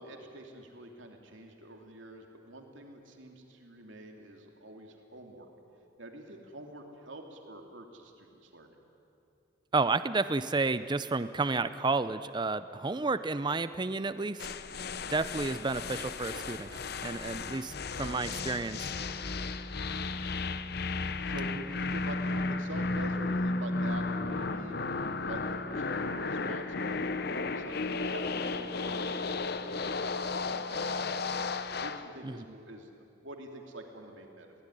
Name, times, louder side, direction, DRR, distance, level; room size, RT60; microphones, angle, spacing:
voice 1, 0.0-5.5 6.0-8.8 18.0-18.3 21.2-24.8 25.2-31.0 31.6-32.9 33.2-34.5, right 1 dB, 70° right, 3 dB, 2.8 m, -46 dB
voice 2, 9.7-14.5 15.1-16.7 17.0-17.7 18.0-18.9 32.2-32.3, right 3 dB, 20° right, 13 dB, 0.5 m, -31 dB
sound 1, 14.4-32.1, left 3 dB, 55° left, 0.8 m, -34 dB
22.0 x 17.5 x 10.0 m, 2.8 s
head